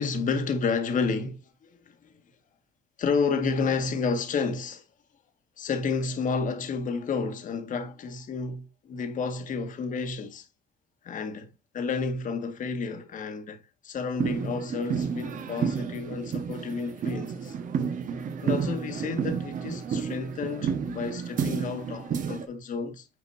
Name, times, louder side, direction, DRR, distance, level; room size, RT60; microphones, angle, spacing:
voice 1, 0.0-1.9 3.0-4.8 5.6-10.5 11.0-13.6 13.8-17.6 18.4-23.1, left 4 dB, 50° left, 1.9 m, -30 dB
sound 1, 14.2-22.5, right 6 dB, 50° right, 1.4 m, -31 dB
9.1 x 5.1 x 2.7 m
cardioid pair, 110°, 17 cm